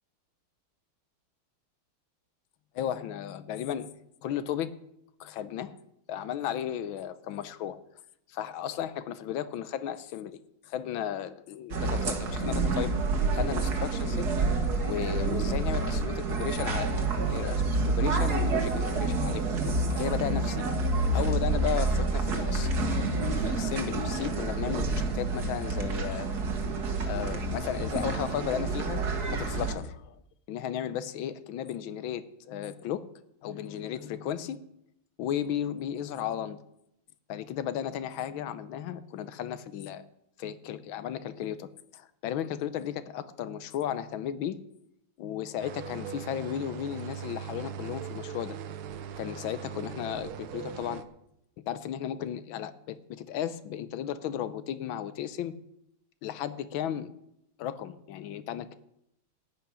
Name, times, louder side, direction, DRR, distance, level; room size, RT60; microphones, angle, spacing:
voice 1, 2.7-3.9 4.2-4.7 5.2-5.8 6.1-7.8 8.3-12.9 13.3-14.3 14.8-19.4 19.9-20.7 21.1-26.3 27.1-29.0 29.3-30.2 30.5-33.1 33.4-34.6 35.2-36.6 37.3-40.0 40.4-44.6 45.2-48.6 49.2-51.0 51.7-55.5 56.2-57.1 57.6-58.8, left 10 dB, 70° left, 14 dB, 1.4 m, -35 dB
sound 1, 11.7-29.7, right 3 dB, 50° right, 1.9 m, -28 dB
sound 2, 45.6-51.0, right 8 dB, 75° right, 1.6 m, -40 dB
14.5 x 5.8 x 9.8 m, 0.81 s
omnidirectional pair, 2.4 m